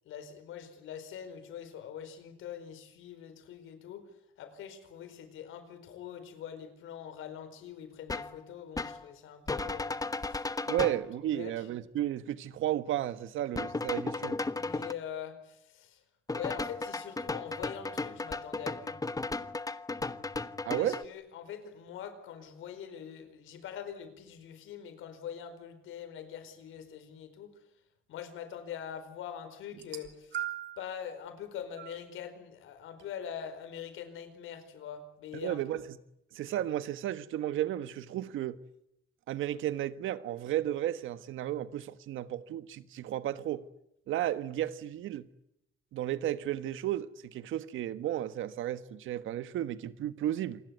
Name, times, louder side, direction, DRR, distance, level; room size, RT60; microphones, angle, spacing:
voice 1, 0.0-4.1 4.4-10.4 10.7-10.8 11.2-11.7 14.5-16.0 16.3-19.0 20.8-27.6 28.1-30.4 30.8-35.6, left 8 dB, 85° left, 4.5 m, -43 dB
sound 1, 8.1-8.4 8.8-9.0 9.5-11.0 13.6-14.9 16.3-21.0, left 3 dB, 20° left, 1.2 m, -35 dB
voice 2, 10.7-14.4 20.6-21.0 35.4-35.8 36.3-38.6 39.3-43.7 44.1-45.3 45.9-50.6, right 12 dB, 85° right, 1.4 m, -33 dB
sound 2, 29.7-30.9 31.8-32.0 33.0-33.1, right 11 dB, 65° right, 3.3 m, -38 dB
28.0 x 20.0 x 9.5 m
cardioid pair, 90°, 20 cm